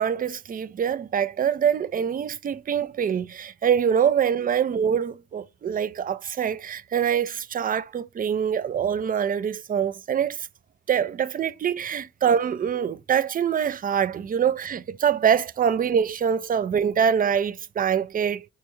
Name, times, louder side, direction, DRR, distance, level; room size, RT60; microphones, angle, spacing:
voice 1, 0.0-10.5 10.9-18.5, right 8 dB, 30° right, 0.4 m, -24 dB
4.4 x 2.2 x 3.0 m
supercardioid pair, 45°, 32 cm